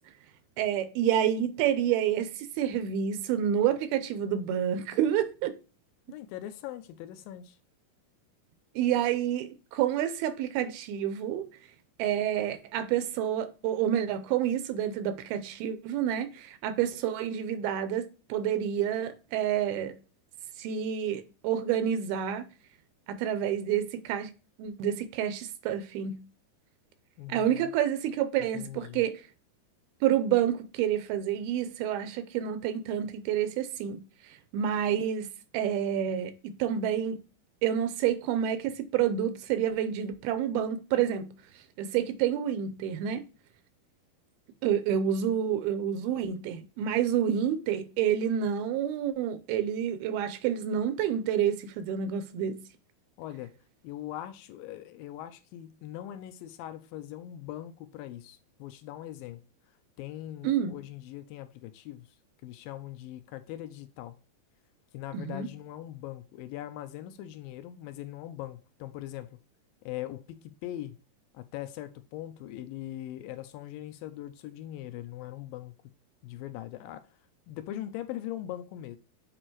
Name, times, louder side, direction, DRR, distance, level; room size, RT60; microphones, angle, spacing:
voice 1, 0.6-5.5 8.8-11.5 12.0-19.9 20.6-22.5 23.1-24.3 24.6-26.2 27.3-29.2 30.0-35.3 35.5-37.2 37.6-41.3 41.8-43.2 44.6-52.6 60.4-60.7 65.1-65.5, right 9 dB, 90° right, 2.6 m, -28 dB
voice 2, 6.1-7.6 27.2-27.7 28.5-29.1 53.2-53.5 53.8-59.4 60.0-62.1 62.4-64.2 64.9-69.4 69.9-71.0 71.3-75.8 76.2-77.1 77.5-79.0, left 13 dB, 80° left, 2.2 m, -41 dB
7.7 x 4.4 x 3.0 m
omnidirectional pair, 4.5 m